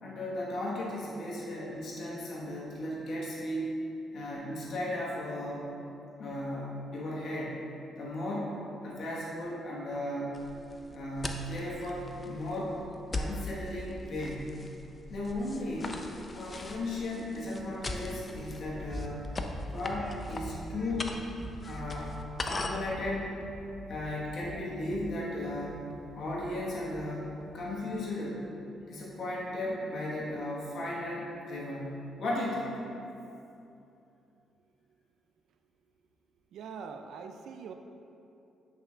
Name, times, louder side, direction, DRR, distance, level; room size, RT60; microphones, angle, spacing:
voice 1, 0.0-3.7 4.1-5.7 6.2-7.6 8.0-10.4 10.9-12.7 13.1-14.5 15.1-16.0 16.3-19.3 19.7-21.2 21.6-23.3 23.9-25.9 26.1-28.4 28.9-32.7, left 1 dB, 65° left, -5 dB, 1.3 m, -36 dB
sound 1, 10.3-22.9, left 2 dB, 35° left, 0.5 m, -41 dB
sound 2, 18.7-27.1 27.4-27.9, equal, 10° left, 0.9 m, -44 dB
voice 2, 36.5-37.7, right 6 dB, 75° right, 6 dB, 0.3 m, -43 dB
8.8 x 5.5 x 2.4 m, 2.8 s
cardioid pair, 75°, 0 cm